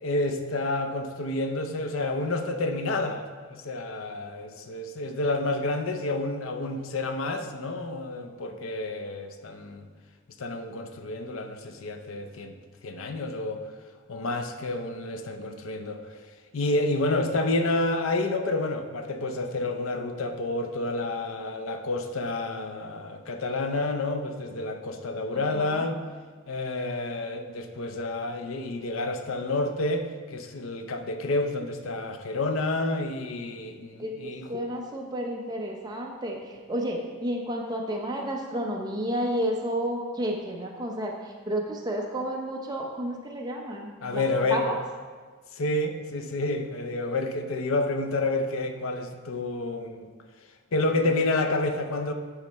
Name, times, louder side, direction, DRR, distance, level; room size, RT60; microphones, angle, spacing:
voice 1, 0.0-9.9 10.4-12.5 12.8-13.6 14.1-16.0 16.5-26.0 26.5-34.6 44.0-44.7 45.5-50.1 50.7-52.1, left 2 dB, 75° left, 6 dB, 0.6 m, -29 dB
voice 2, 25.3-25.8 34.0-44.2 44.5-44.8, right 1 dB, 20° right, 0 dB, 0.7 m, -31 dB
9.6 x 3.3 x 4.2 m, 1.5 s
head